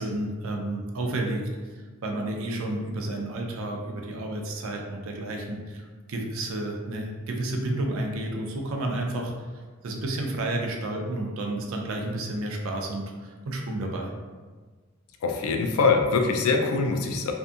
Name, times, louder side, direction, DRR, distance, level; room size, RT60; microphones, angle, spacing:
voice 1, 0.0-1.4 2.0-9.3 9.8-14.1, right 1 dB, 75° right, 1 dB, 0.4 m, -31 dB
voice 2, 15.2-17.3, left 4 dB, 85° left, 4 dB, 0.4 m, -23 dB
2.6 x 2.5 x 2.3 m, 1.4 s
head